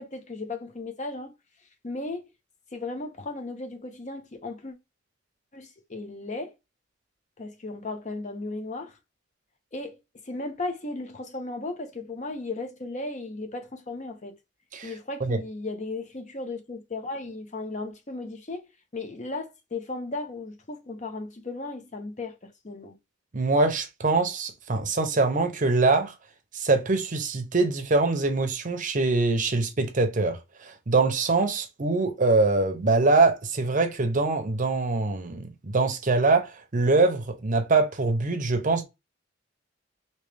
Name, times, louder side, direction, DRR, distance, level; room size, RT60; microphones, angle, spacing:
voice 1, 0.0-1.3 1.8-2.3 2.7-4.7 5.5-6.5 7.4-9.0 9.7-10.0 10.3-14.4 14.8-18.6 18.9-23.0, left 2 dB, 35° left, 0.7 m, -35 dB
voice 2, 23.3-26.1 26.5-38.8, right 3 dB, 40° right, 0.7 m, -23 dB
3.1 x 2.9 x 3.3 m
head